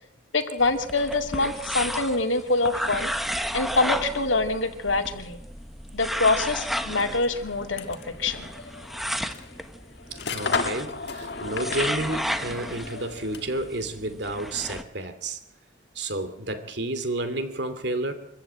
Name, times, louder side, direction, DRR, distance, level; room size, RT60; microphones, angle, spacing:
voice 1, 0.3-3.1 3.5-5.4 5.9-8.5, left 3 dB, 85° left, 2.2 m, -25 dB
sound 1, 0.6-14.8, equal, ahead, 1.0 m, -33 dB
sound 2, 6.9-13.7, left 4 dB, 60° left, 1.7 m, -35 dB
voice 2, 10.1-15.4 15.9-18.1, right 2 dB, 60° right, 2.7 m, -31 dB
25.0 x 14.5 x 8.9 m
head